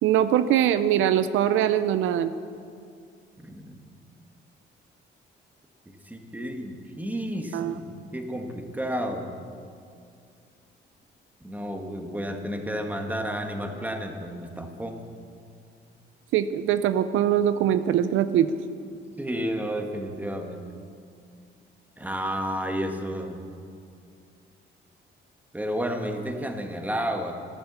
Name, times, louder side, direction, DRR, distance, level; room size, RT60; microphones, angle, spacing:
voice 1, 0.0-2.3 7.5-7.7 16.3-18.5, right 10 dB, 85° right, 12 dB, 0.6 m, -22 dB
voice 2, 3.4-3.7 6.0-9.3 11.4-15.0 19.2-20.6 22.0-23.4 25.5-27.3, equal, 10° right, 4 dB, 1.7 m, -31 dB
13.5 x 10.5 x 6.9 m, 2.3 s
cardioid pair, 90°, 20 cm